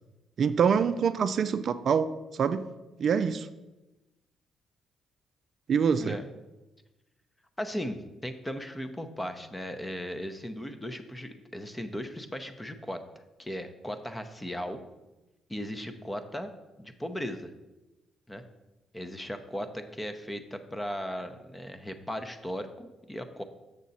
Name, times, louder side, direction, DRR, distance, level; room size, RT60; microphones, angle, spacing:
voice 1, 0.4-2.1 2.3-2.7 3.0-3.5 5.7-6.2, right 6 dB, 55° right, 11 dB, 0.3 m, -25 dB
voice 2, 7.6-13.0 13.4-14.8 15.5-16.5 16.8-17.5 18.3-18.4 18.9-23.4, equal, 10° left, 8 dB, 0.7 m, -37 dB
6.8 x 6.2 x 4.1 m, 1.0 s
cardioid pair, 90°, 0 cm